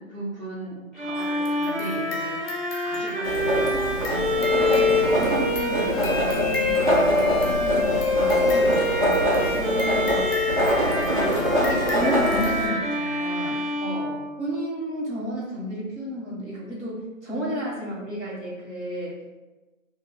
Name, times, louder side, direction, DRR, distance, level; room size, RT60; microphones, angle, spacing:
voice 1, 0.0-2.4 2.8-3.9 9.2-9.5 13.8-14.3, right 2 dB, 85° right, -5 dB, 1.1 m, -36 dB
Bowed string instrument, 1.0-14.9, left 2 dB, ahead, 0.5 m, -26 dB
sound 1, 1.1-13.8, equal, 45° left, 0.5 m, -35 dB
Writing, 3.2-12.7, equal, 40° right, 0.7 m, -25 dB
voice 2, 4.3-8.8 9.3-13.6 14.4-19.2, equal, 60° right, -6 dB, 1.2 m, -32 dB
2.3 x 2.2 x 3.8 m, 1.1 s
figure-of-eight pair, 180°, 40 cm